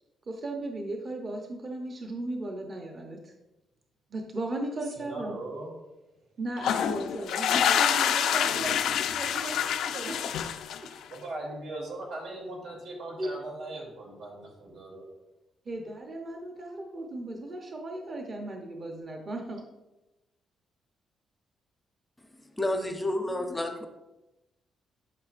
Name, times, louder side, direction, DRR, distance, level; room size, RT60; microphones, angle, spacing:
voice 1, 0.3-3.3 4.1-5.3 6.4-10.6 10.8-11.0 13.2-13.3 15.7-19.6, right 2 dB, 35° right, 2 dB, 0.8 m, -36 dB
voice 2, 4.9-5.7 8.5-8.7 11.1-15.0, right 2 dB, 90° right, -2 dB, 2.7 m, -39 dB
sound 1, 6.6-11.1, left 9 dB, 85° left, 0.4 m, -27 dB
voice 3, 22.5-23.9, left 1 dB, 10° left, 5 dB, 0.6 m, -30 dB
10.5 x 5.7 x 2.5 m, 1.0 s
cardioid pair, 150°, 0 cm